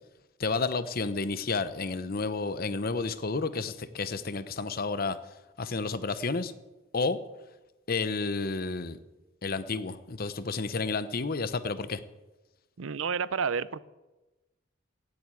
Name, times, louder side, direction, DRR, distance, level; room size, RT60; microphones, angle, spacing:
voice 1, 0.4-5.2 5.6-6.5 6.9-7.2 7.9-9.0 9.4-12.0, left 4 dB, 45° left, 13 dB, 0.8 m, -31 dB
voice 2, 12.8-13.8, right 6 dB, 80° right, 18 dB, 0.6 m, -30 dB
17.0 x 7.8 x 8.4 m, 1.1 s
head